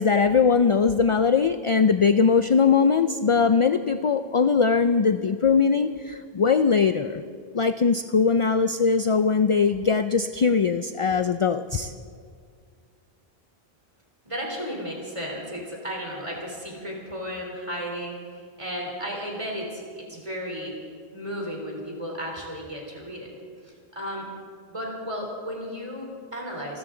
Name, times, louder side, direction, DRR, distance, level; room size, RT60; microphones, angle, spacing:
voice 1, 0.0-7.2 7.5-11.9, left 5 dB, 50° left, 10 dB, 0.4 m, -21 dB
voice 2, 14.3-20.8 21.1-23.3 23.6-24.3 24.7-26.8, equal, 30° right, -1 dB, 3.6 m, -34 dB
28.5 x 13.0 x 3.8 m, 2.1 s
omnidirectional pair, 1.0 m